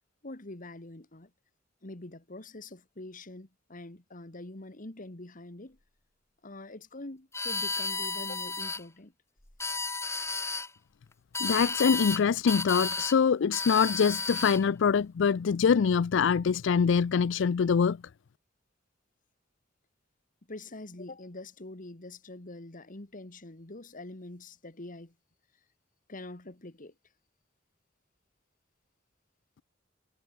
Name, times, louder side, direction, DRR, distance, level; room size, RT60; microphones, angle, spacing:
voice 1, 0.2-1.3 1.8-5.8 6.4-9.1 13.3-13.5 20.5-25.1 26.1-26.9, left 2 dB, 45° left, 2.0 m, -44 dB
sound 1, 7.3-8.8 9.5-10.7 11.3-12.2 12.5-13.2 13.5-14.6, left 3 dB, 15° left, 1.3 m, -32 dB
voice 2, 11.4-18.0, left 6 dB, 70° left, 0.4 m, -24 dB
head